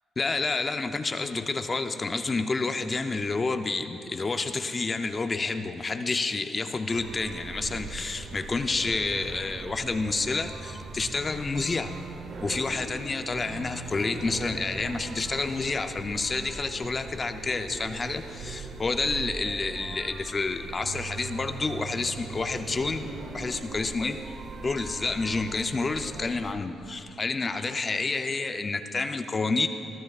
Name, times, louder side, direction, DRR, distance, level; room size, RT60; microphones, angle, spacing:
voice 1, 0.2-11.9 12.4-23.1 23.3-24.2 24.6-29.7, left 3 dB, 30° left, 8 dB, 0.5 m, -29 dB
sound 1, 6.9-26.5, right 3 dB, 55° right, 1.0 m, -40 dB
19.5 x 12.5 x 2.4 m, 2.9 s
cardioid pair, 90°, 0 cm